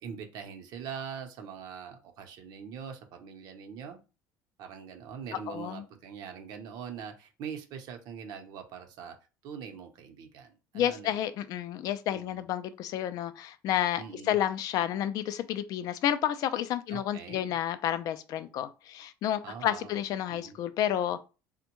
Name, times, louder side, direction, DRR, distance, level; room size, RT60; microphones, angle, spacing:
voice 1, 0.0-4.0 4.6-9.2 9.4-11.2 12.1-12.4 14.0-14.4 16.9-17.5 19.4-20.0 20.3-20.6, right 7 dB, 60° right, 0.7 m, -43 dB
voice 2, 5.3-5.8 10.7-21.2, left 11 dB, 50° left, 0.3 m, -30 dB
3.4 x 2.1 x 2.9 m
cardioid pair, 130°, 8 cm